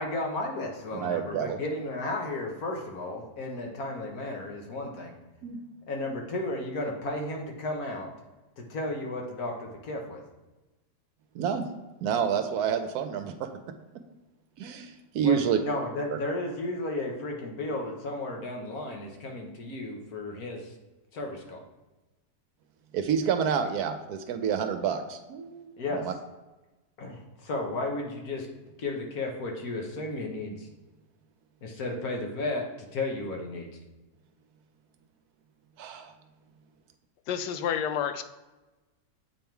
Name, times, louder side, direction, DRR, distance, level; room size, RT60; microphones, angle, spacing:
voice 1, 0.0-5.1 5.9-8.1 8.6-10.2 15.2-20.7 21.1-21.6 25.8-26.0 27.0-28.5 28.8-30.7 31.6-32.6 32.9-33.7, left 2 dB, 65° left, 1 dB, 1.5 m, -33 dB
voice 2, 0.9-1.6 5.4-5.6 11.3-11.7 12.0-13.5 14.6-15.6 16.1-16.2 22.9-25.7 26.0-26.1 35.8-36.1, right 7 dB, 75° right, 8 dB, 1.0 m, -28 dB
voice 3, 37.3-38.2, left 8 dB, 90° left, 9 dB, 1.2 m, -29 dB
7.6 x 3.6 x 4.5 m, 1.1 s
omnidirectional pair, 1.8 m